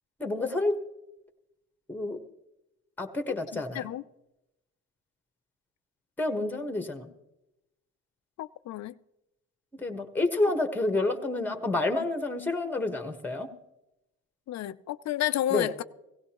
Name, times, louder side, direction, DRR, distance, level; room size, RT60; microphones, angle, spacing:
voice 1, 0.2-0.8 1.9-2.2 3.0-3.9 6.2-7.0 9.8-13.5 15.5-15.7, left 2 dB, 5° left, 1.3 m, -29 dB
voice 2, 3.5-4.0 8.4-8.9 14.5-15.8, left 13 dB, 65° left, 0.5 m, -31 dB
17.0 x 16.0 x 3.0 m
cardioid pair, 90°, 30 cm